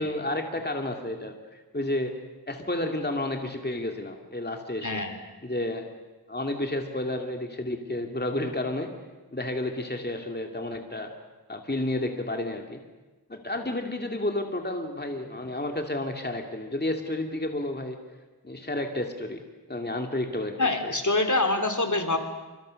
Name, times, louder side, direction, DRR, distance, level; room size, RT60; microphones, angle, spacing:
voice 1, 0.0-2.1 2.5-5.0 5.4-5.9 6.3-8.9 9.3-11.1 11.5-12.8 13.3-18.0 18.4-19.4 19.7-20.5 20.8-20.9, left 1 dB, 25° left, 4 dB, 2.6 m, -31 dB
voice 2, 4.8-5.2 20.6-22.2, left 2 dB, 50° left, 5 dB, 3.2 m, -25 dB
29.0 x 27.0 x 6.5 m, 1.2 s
wide cardioid pair, 50°, 38 cm